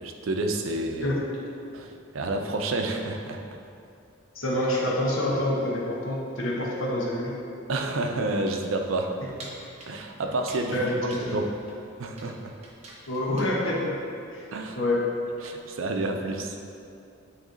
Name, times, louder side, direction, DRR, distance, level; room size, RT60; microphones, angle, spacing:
voice 1, 0.0-1.2 1.7-3.4 7.7-9.1 9.9-11.5 12.0-12.5 14.5-14.8 15.4-16.6, right 2 dB, 75° right, 4 dB, 0.6 m, -29 dB
voice 2, 4.3-7.3 10.7-11.4 13.1-14.0 14.3-14.4 14.8-15.0, left 1 dB, 70° left, -3 dB, 1.0 m, -27 dB
sound 1, 9.4-14.0, right 2 dB, 30° right, 0.9 m, -47 dB
9.1 x 3.2 x 3.8 m, 2.6 s
head